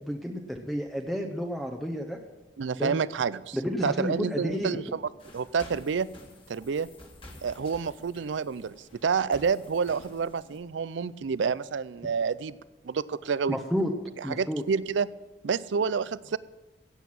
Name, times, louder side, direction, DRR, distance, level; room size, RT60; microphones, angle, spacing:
voice 1, 0.0-2.2 2.7-3.0 3.5-4.8 13.5-13.9 14.2-14.6, equal, ahead, 2 dB, 0.8 m, -31 dB
voice 2, 2.6-3.6 3.8-5.0 5.3-6.1 6.5-6.9 7.4-8.8 9.0-12.6 12.8-13.6 14.2-15.1 15.4-16.4, right 5 dB, 80° right, 18 dB, 0.4 m, -28 dB
sound 1, 5.2-10.6, left 1 dB, 30° left, 1.9 m, -50 dB
16.5 x 8.0 x 6.0 m, 1.1 s
head